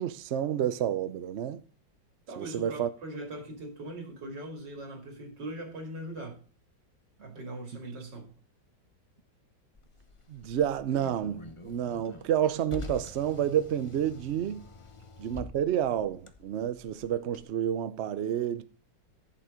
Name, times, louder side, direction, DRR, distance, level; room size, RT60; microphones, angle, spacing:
voice 1, 0.0-1.6 2.4-2.9 10.3-14.6 15.2-18.6, right 10 dB, 90° right, 0.5 m, -29 dB
voice 2, 2.3-6.4 7.2-8.3, right 1 dB, 65° right, 3.2 m, -40 dB
Car, 9.7-17.4, left 3 dB, 55° left, 0.3 m, -47 dB
11.0 x 7.4 x 5.0 m
omnidirectional pair, 2.1 m